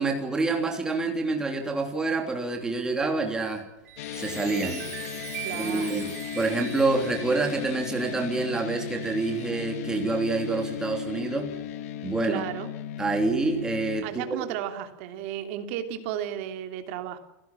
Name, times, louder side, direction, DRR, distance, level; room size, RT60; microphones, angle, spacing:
voice 1, 0.0-3.6 4.1-4.9 5.5-11.5 12.0-12.4 13.0-14.5, right 3 dB, 10° right, 3 dB, 3.1 m, -27 dB
Chime, 3.8-9.8 10.3-10.6, right 11 dB, 80° right, 6.1 m, -41 dB
sound 1, 4.0-14.0, left 10 dB, 60° left, 1.7 m, -36 dB
voice 2, 5.4-6.1 12.0-12.7 14.0-17.2, right 10 dB, 50° right, 7 dB, 2.9 m, -34 dB
29.5 x 16.5 x 7.5 m, 0.95 s
supercardioid pair, 175°, 9 cm